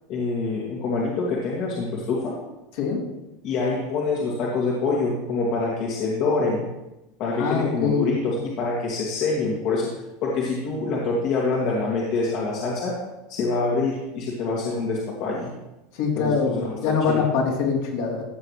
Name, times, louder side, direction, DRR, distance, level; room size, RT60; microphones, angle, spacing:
voice 1, 0.1-2.3 3.4-6.6 7.2-9.9 10.2-13.0 13.3-15.5 16.1-17.2, left 3 dB, 55° left, -4 dB, 2.4 m, -25 dB
voice 2, 7.4-8.1 16.0-18.2, left 5 dB, 70° left, -3 dB, 3.5 m, -24 dB
15.5 x 6.9 x 3.3 m, 0.97 s
hypercardioid pair, 110°, 0 cm